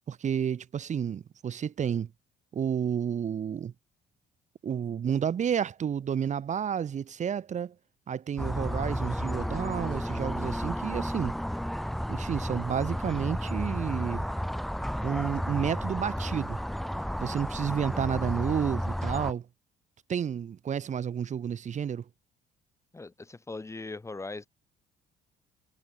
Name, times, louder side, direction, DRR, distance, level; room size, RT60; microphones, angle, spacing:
voice 1, 0.1-2.1 2.5-3.7 4.6-7.7 8.1-11.4 12.1-14.3 15.0-16.6 17.2-19.5 20.1-22.0, right 8 dB, 45° right, 4.0 m, -31 dB
sound 1, 8.4-19.3, equal, ahead, 1.4 m, -32 dB
voice 2, 22.9-24.5, left 3 dB, 15° left, 3.9 m, -39 dB
cardioid pair, 110°, 17 cm